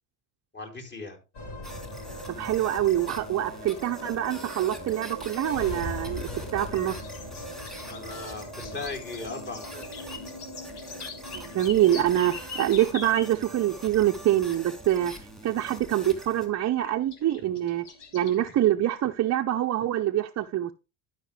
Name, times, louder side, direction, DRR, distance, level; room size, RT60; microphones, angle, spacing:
voice 1, 0.5-1.2 7.8-9.9, left 3 dB, 25° left, 3.6 m, -38 dB
sound 1, 1.3-19.8, left 1 dB, 60° left, 5.6 m, -42 dB
sound 2, 1.6-16.5, right 1 dB, ahead, 2.6 m, -44 dB
voice 2, 2.3-7.0 11.3-17.8 18.1-20.7, right 12 dB, 35° right, 0.7 m, -25 dB
sound 3, 6.7-13.3 15.0-15.1 16.8-18.5, left 5 dB, 85° left, 2.5 m, -42 dB
12.0 x 5.8 x 3.3 m
supercardioid pair, 90°, 46 cm